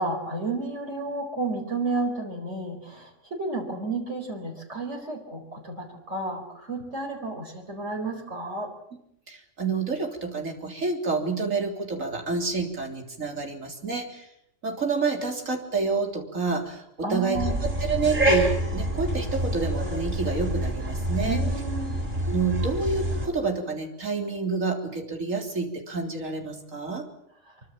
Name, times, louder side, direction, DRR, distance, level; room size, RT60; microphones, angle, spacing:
voice 1, 0.0-8.7 17.0-17.6 21.2-22.0 27.5-27.6, right 3 dB, 60° right, 1 dB, 4.9 m, -31 dB
voice 2, 9.3-14.3 14.6-17.5 17.8-21.4 22.2-27.0, right 4 dB, 90° right, 2 dB, 4.0 m, -28 dB
sound 1, 17.3-23.3, right 1 dB, 40° right, 5.3 m, -27 dB
25.5 x 24.0 x 7.5 m, 0.77 s
omnidirectional pair, 1.3 m